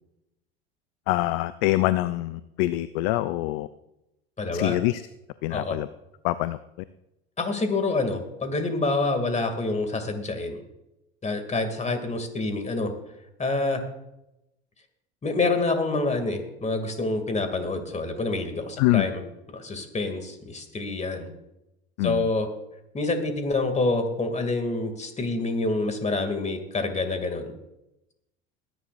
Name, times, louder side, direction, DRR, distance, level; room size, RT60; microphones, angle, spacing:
voice 1, 1.1-3.7 4.5-5.0 5.4-5.9 6.2-6.6 18.8-19.1 22.0-22.2, left 17 dB, 70° left, 14 dB, 0.6 m, -24 dB
voice 2, 4.4-4.8 5.5-5.8 7.4-10.6 11.2-12.9 13.4-13.8 15.2-19.2 19.5-21.3 22.0-22.5 22.9-27.5, left 3 dB, 20° left, 6 dB, 2.5 m, -27 dB
21.5 x 10.5 x 2.6 m, 0.90 s
hypercardioid pair, 85°, 31 cm